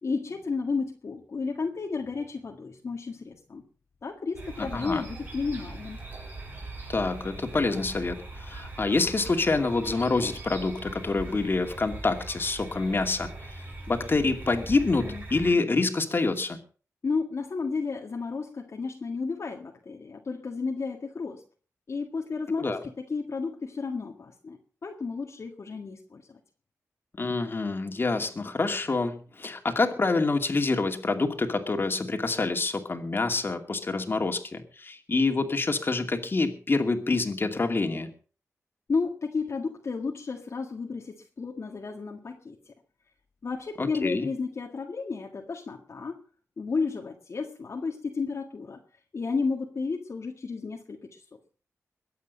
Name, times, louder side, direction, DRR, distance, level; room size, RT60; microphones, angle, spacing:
voice 1, 0.0-3.6 4.0-6.0 17.0-21.4 21.9-26.4 38.9-42.6 43.4-46.2 46.6-48.8 49.1-51.2, left 4 dB, 55° left, 1 dB, 1.8 m, -32 dB
sound 1, 4.3-15.5, right 2 dB, 30° right, 5.9 m, -41 dB
voice 2, 4.6-5.0 6.9-13.6 13.9-16.6 22.6-22.8 27.2-38.1 43.8-44.3, left 3 dB, 40° left, 5 dB, 2.5 m, -27 dB
22.0 x 8.4 x 5.4 m, 0.39 s
cardioid pair, 80°, 6 cm